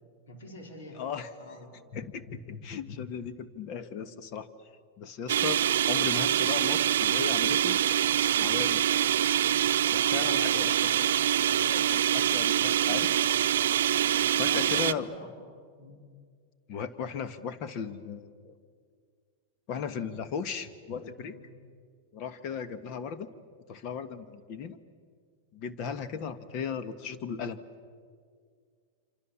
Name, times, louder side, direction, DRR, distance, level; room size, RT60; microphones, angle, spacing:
voice 1, 0.3-1.0 1.4-1.7 10.1-10.6 14.4-15.3 15.8-16.0 21.3-21.5, left 2 dB, 80° left, 1 dB, 4.8 m, -45 dB
voice 2, 0.9-1.3 1.9-4.5 5.0-7.8 8.4-8.8 9.9-11.1 11.5-13.2 14.2-15.1 16.7-18.5 19.7-21.4 22.1-23.3 23.7-24.8 25.5-27.6, left 6 dB, 50° left, 11 dB, 1.5 m, -36 dB
sound 1, 5.3-14.9, right 11 dB, 80° right, 0.6 m, -25 dB
27.0 x 26.5 x 7.3 m, 2.1 s
hypercardioid pair, 115°, 0 cm